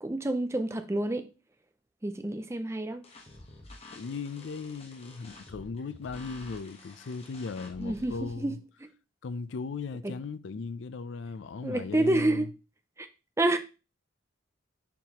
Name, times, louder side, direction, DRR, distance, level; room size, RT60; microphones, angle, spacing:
voice 1, 0.0-1.3 2.0-3.0 7.8-8.9 10.0-10.1 11.6-12.5 13.0-13.1 13.4-13.6, right 1 dB, 15° right, 0.5 m, -28 dB
sound 1, 3.0-8.3, left 2 dB, 30° left, 1.1 m, -49 dB
voice 2, 3.9-8.6 9.2-12.5, left 4 dB, 65° left, 0.4 m, -37 dB
7.1 x 4.7 x 2.9 m
head